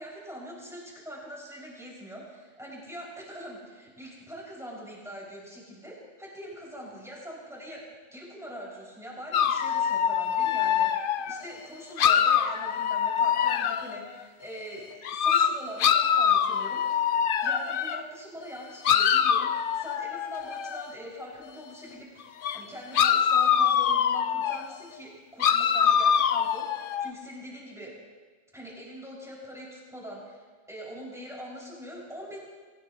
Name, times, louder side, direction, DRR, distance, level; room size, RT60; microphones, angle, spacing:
voice 1, 0.0-7.8 8.1-17.1 17.4-27.9 28.5-32.4, equal, ahead, -5 dB, 5.5 m, -43 dB
sound 1, 9.3-11.4 12.0-14.0 15.0-18.0 18.8-20.8 22.4-22.6 22.9-24.6 25.4-27.1, left 8 dB, 55° left, 0.6 m, -24 dB
22.5 x 19.0 x 3.0 m, 1.5 s
omnidirectional pair, 1.3 m